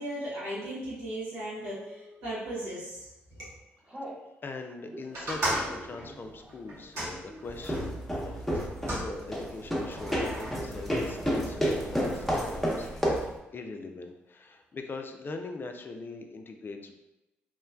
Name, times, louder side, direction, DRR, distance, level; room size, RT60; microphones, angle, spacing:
voice 1, 0.0-3.1, right 1 dB, 90° right, -9 dB, 1.0 m, -36 dB
Telephone, 1.7-2.2 2.8-3.1 3.3-4.2 4.8-10.3 10.5-11.6 11.9-12.4 12.7-12.8 13.0-13.6, equal, 20° right, 1.0 m, -49 dB
voice 2, 4.4-13.0 13.5-17.0, left 3 dB, 40° left, 5 dB, 0.3 m, -41 dB
sound 1, 5.1-7.9 8.5-9.1 9.9-10.5, right 1 dB, 70° right, 1.4 m, -35 dB
sound 2, 7.5-13.4, equal, 5° left, 0.8 m, -30 dB
3.0 x 2.1 x 2.3 m, 0.95 s
hypercardioid pair, 45°, 5 cm